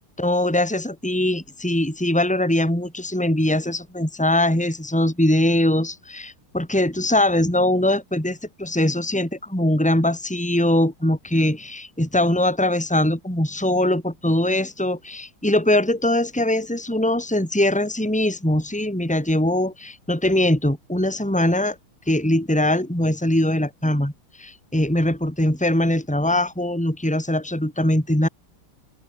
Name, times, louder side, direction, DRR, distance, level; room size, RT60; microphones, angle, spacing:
voice 1, 0.2-21.8 22.1-24.1 24.4-28.3, left 1 dB, 5° left, 4.6 m, -21 dB
open air
omnidirectional pair, 2.4 m